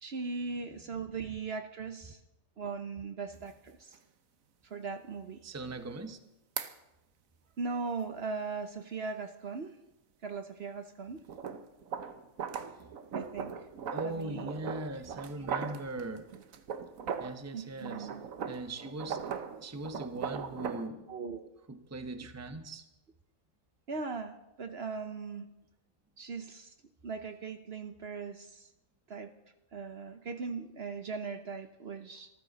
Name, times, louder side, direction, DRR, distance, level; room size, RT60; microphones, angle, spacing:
voice 1, 0.0-2.2 2.6-4.0 4.7-5.4 7.6-9.8 10.2-11.2 13.1-13.6 14.0-14.5 15.4-15.5 17.5-18.2 21.1-21.5 23.9-25.5 26.2-26.7 27.0-28.7 29.1-29.3 29.7-32.3, right 4 dB, 55° right, 8 dB, 1.0 m, -39 dB
sound 1, 3.3-3.4 3.9-4.0 6.6-6.7 11.2-17.4 17.8-20.9, right 7 dB, 80° right, 1.4 m, -39 dB
voice 2, 5.4-6.2 13.9-16.3 17.2-18.1 18.5-19.2 19.6-21.1 21.7-22.9, right 2 dB, 15° right, 8 dB, 0.8 m, -40 dB
25.5 x 14.5 x 4.0 m, 0.95 s
omnidirectional pair, 1.4 m